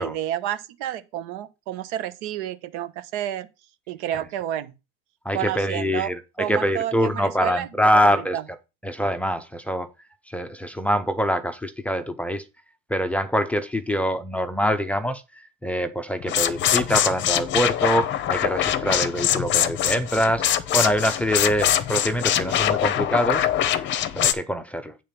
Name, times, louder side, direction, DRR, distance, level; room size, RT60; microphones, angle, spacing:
voice 1, 0.0-3.5 3.9-4.7 5.3-6.1 6.4-7.7 8.3-8.4, right 11 dB, 90° right, 1.1 m, -30 dB
voice 2, 5.2-8.6 8.8-9.9 10.3-12.4 12.9-20.5 20.7-23.5 24.1-25.0, equal, 5° left, 0.5 m, -24 dB
sound 1, 16.2-24.3, left 11 dB, 35° left, 0.8 m, -23 dB
8.9 x 3.7 x 6.8 m
cardioid pair, 150°, 33 cm